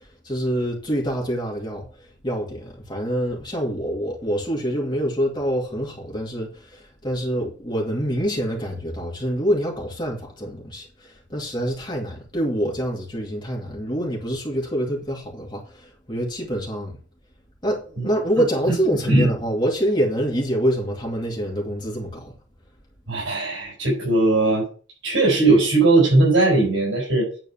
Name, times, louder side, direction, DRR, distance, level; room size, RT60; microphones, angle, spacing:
voice 1, 0.2-16.9 17.6-22.4, equal, 25° left, 2.4 m, -26 dB
voice 2, 23.1-24.6 25.0-27.3, right 2 dB, 85° right, 5.4 m, -18 dB
9.6 x 4.5 x 7.2 m
head